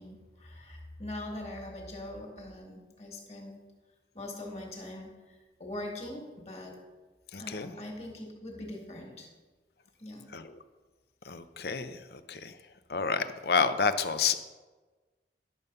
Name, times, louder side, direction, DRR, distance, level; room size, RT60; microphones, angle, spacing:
voice 1, 0.0-3.7 4.1-6.8 7.4-9.3 10.0-10.3, left 1 dB, 35° left, 1 dB, 1.9 m, -42 dB
voice 2, 7.3-7.7 10.3-10.5 11.2-12.6 12.9-14.4, left 5 dB, 60° left, 11 dB, 0.6 m, -29 dB
11.0 x 6.7 x 5.4 m, 1.3 s
head